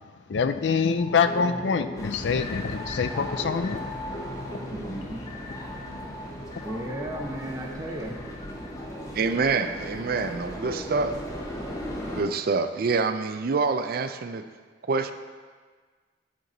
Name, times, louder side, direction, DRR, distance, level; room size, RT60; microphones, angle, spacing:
voice 1, 0.3-3.8, left 5 dB, 85° left, 10 dB, 0.5 m, -25 dB
sound 1, 1.0-10.3 10.6-10.8, left 1 dB, 35° left, 0.6 m, -39 dB
sound 2, 2.0-12.2, equal, 20° left, 1.1 m, -38 dB
voice 2, 4.7-5.2 6.6-8.2, right 1 dB, 20° right, -1 dB, 0.7 m, -35 dB
voice 3, 9.1-11.2 12.2-14.5 14.9-15.1, right 4 dB, 55° right, 10 dB, 0.4 m, -26 dB
12.0 x 4.5 x 3.9 m, 1.5 s
head